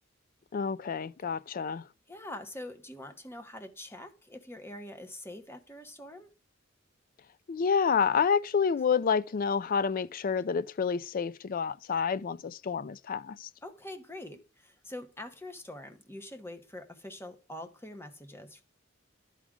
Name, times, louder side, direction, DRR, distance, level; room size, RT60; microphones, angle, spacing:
voice 1, 0.5-1.8 7.5-13.5, left 6 dB, 45° left, 0.4 m, -29 dB
voice 2, 2.1-6.3 13.6-18.6, left 1 dB, 10° left, 0.9 m, -44 dB
11.0 x 4.9 x 3.6 m
head